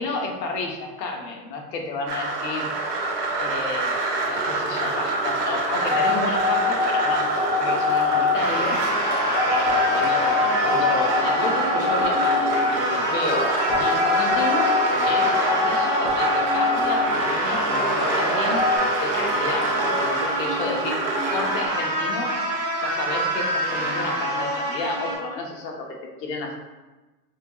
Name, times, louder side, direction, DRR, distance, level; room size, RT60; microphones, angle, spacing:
voice 1, 0.0-2.7 3.4-3.9 4.3-8.8 9.5-10.3 10.6-14.8 15.0-18.6 19.0-22.4 22.8-25.9 26.2-26.6, left 3 dB, 80° left, 1 dB, 1.1 m, -31 dB
sound 1, 2.1-21.7, right 3 dB, 65° right, 1.3 m, -27 dB
sound 2, 5.8-18.8, left 5 dB, 5° left, 0.3 m, -24 dB
sound 3, 8.4-25.1, right 1 dB, 25° right, 1.2 m, -27 dB
6.6 x 2.3 x 2.9 m, 1.2 s
supercardioid pair, 145°, 49 cm